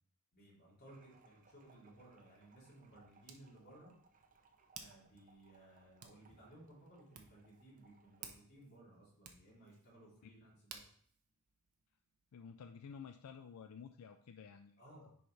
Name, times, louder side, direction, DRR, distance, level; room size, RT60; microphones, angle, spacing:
voice 1, 0.3-3.9 4.7-10.9 14.8-15.1, right 1 dB, 50° left, -5 dB, 3.1 m, -60 dB
sound 1, 0.9-8.3, right 4 dB, 35° right, 0.6 m, -69 dB
Hands, 1.7-12.4, right 7 dB, 85° right, 0.9 m, -60 dB
voice 2, 12.3-15.2, left 6 dB, 85° left, 7 dB, 0.4 m, -53 dB
10.0 x 4.3 x 3.3 m, 0.63 s
head